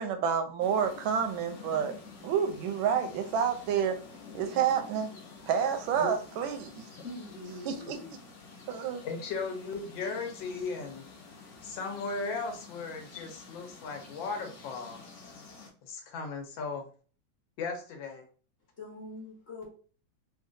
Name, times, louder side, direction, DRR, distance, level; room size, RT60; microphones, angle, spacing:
voice 1, 0.0-1.9 2.2-4.0 4.3-5.1 5.5-6.8 7.7-8.0 8.7-9.0, right 7 dB, 85° right, 6 dB, 1.4 m, -29 dB
sound 1, 0.6-15.7, left 4 dB, 60° left, 0.8 m, -49 dB
voice 2, 5.4-6.1 7.0-8.2 18.8-19.7, left 2 dB, 40° left, -4 dB, 1.1 m, -45 dB
voice 3, 9.0-11.0 11.6-15.0 15.8-16.9 17.6-18.2, left 4 dB, 80° left, 4 dB, 1.4 m, -36 dB
3.8 x 2.3 x 2.5 m, 0.40 s
omnidirectional pair, 2.1 m